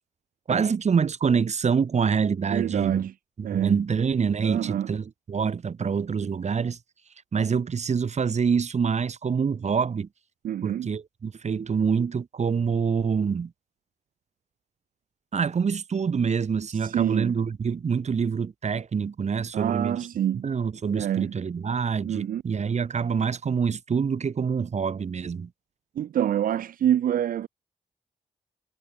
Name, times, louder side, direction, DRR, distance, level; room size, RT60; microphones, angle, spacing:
voice 1, 0.5-3.0 3.4-6.8 7.3-10.1 10.6-13.5 15.3-20.1 20.4-25.5, right 6 dB, 50° right, 1.7 m, -26 dB
voice 2, 2.5-3.1 3.4-3.8 4.4-4.9 10.4-10.9 16.7-17.3 19.5-20.5 20.9-21.3 22.1-22.4 26.0-27.5, right 10 dB, 80° right, 0.8 m, -26 dB
cardioid pair, 65°, 14 cm